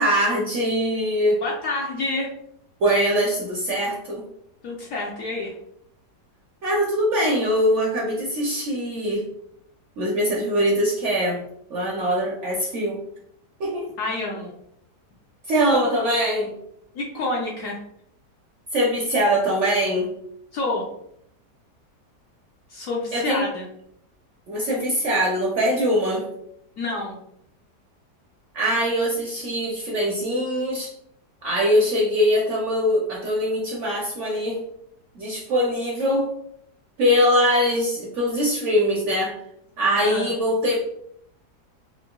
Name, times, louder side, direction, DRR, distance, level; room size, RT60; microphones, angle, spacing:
voice 1, 0.0-1.4 2.8-4.2 6.6-9.2 10.0-11.4 11.7-13.0 13.6-13.9 15.5-16.5 18.7-20.1 23.1-23.4 24.5-26.2 28.5-30.9 31.4-34.6 35.1-36.3 37.0-39.3 39.8-40.8, equal, 65° right, -2 dB, 0.8 m, -22 dB
voice 2, 1.4-2.3 4.6-5.5 14.0-14.5 16.9-17.8 20.5-20.8 22.7-23.7 26.8-27.2 40.0-40.3, left 2 dB, 65° left, -2 dB, 0.8 m, -28 dB
3.8 x 2.6 x 2.2 m, 0.73 s
omnidirectional pair, 1.8 m